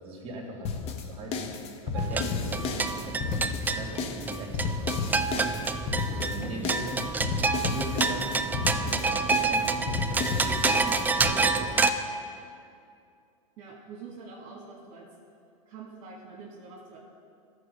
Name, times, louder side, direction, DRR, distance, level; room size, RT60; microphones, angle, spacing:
voice 1, 0.0-7.2 7.7-9.1 9.5-11.7, right 1 dB, 30° right, 0 dB, 2.2 m, -40 dB
sound 1, 0.6-11.3, left 5 dB, 35° left, 0.8 m, -33 dB
sound 2, 1.9-11.9, right 4 dB, 10° right, 0.3 m, -28 dB
voice 2, 13.6-15.0 15.7-17.0, right 4 dB, 45° right, -4 dB, 1.8 m, -45 dB
13.5 x 4.7 x 5.3 m, 2.4 s
hypercardioid pair, 115°, 18 cm